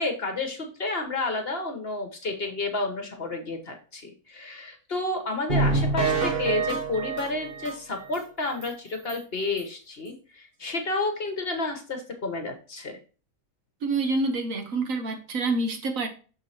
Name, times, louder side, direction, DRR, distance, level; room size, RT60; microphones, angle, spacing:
voice 1, 0.0-13.0, left 2 dB, 45° left, 1.3 m, -31 dB
sound 1, 5.5-8.2 8.6-8.7 9.1-9.2 9.6-9.7, right 3 dB, 40° right, 1.4 m, -26 dB
voice 2, 13.8-16.1, right 3 dB, 65° right, 1.4 m, -27 dB
6.5 x 4.7 x 4.2 m
omnidirectional pair, 1.5 m